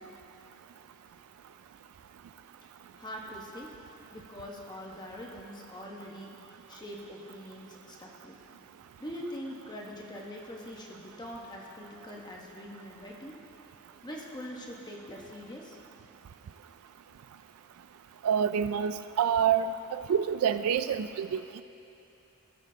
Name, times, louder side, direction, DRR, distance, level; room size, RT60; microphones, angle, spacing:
voice 1, 3.0-3.7 4.1-6.3 6.7-8.3 9.0-13.4 14.0-15.8, equal, 20° left, -2 dB, 1.0 m, -43 dB
voice 2, 18.2-19.7 19.9-21.4, right 8 dB, 80° right, 12 dB, 0.3 m, -27 dB
17.0 x 7.1 x 2.8 m, 2.8 s
head